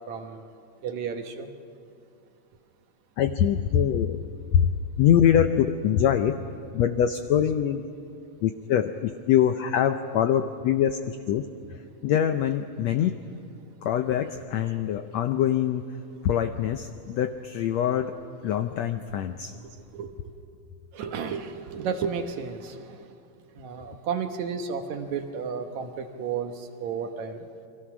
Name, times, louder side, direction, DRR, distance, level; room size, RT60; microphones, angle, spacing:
voice 1, 0.1-0.5 0.8-1.5 19.9-20.1 20.9-23.0 23.6-27.4, right 6 dB, 65° right, 6 dB, 2.2 m, -32 dB
voice 2, 3.2-4.2 4.5-4.7 5.0-6.4 6.7-7.8 8.4-11.4 11.7-13.2 13.8-15.8 16.2-18.2 18.4-19.5, left 9 dB, 80° left, 8 dB, 1.5 m, -24 dB
29.0 x 23.0 x 6.1 m, 2.4 s
omnidirectional pair, 3.9 m